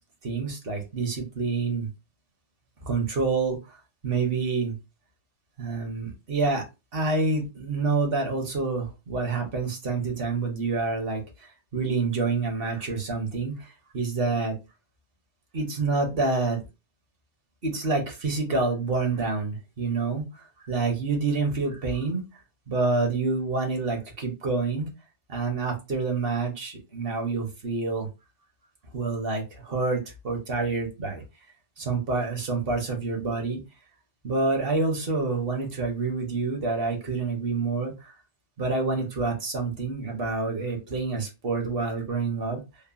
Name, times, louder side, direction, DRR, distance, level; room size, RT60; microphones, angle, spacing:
voice 1, 0.2-1.9 2.8-4.8 5.6-6.6 6.9-14.5 15.5-16.6 17.6-22.2 22.7-24.9 25.3-28.1 28.9-31.2 31.8-33.6 34.2-38.1 38.6-42.6, right 3 dB, 55° right, 1 dB, 1.0 m, -27 dB
3.1 x 2.1 x 2.4 m, 0.27 s
omnidirectional pair, 1.2 m